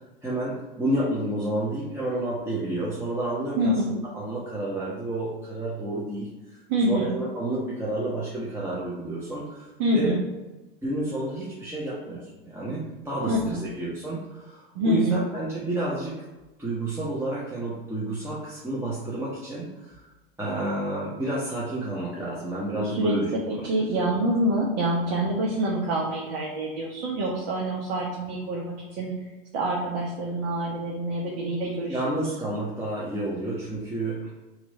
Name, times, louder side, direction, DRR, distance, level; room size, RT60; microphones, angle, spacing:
voice 1, 0.2-6.6 6.9-10.2 10.8-16.2 16.6-20.1 20.4-23.7 31.9-34.3, right 1 dB, 10° right, -7 dB, 0.9 m, -30 dB
voice 2, 3.6-3.9 6.7-7.1 9.8-10.2 13.3-13.6 14.7-15.2 22.7-23.1 23.5-29.1 29.5-32.2, right 1 dB, 55° right, -3 dB, 1.0 m, -26 dB
3.0 x 2.5 x 4.0 m, 1.1 s
hypercardioid pair, 95°, 29 cm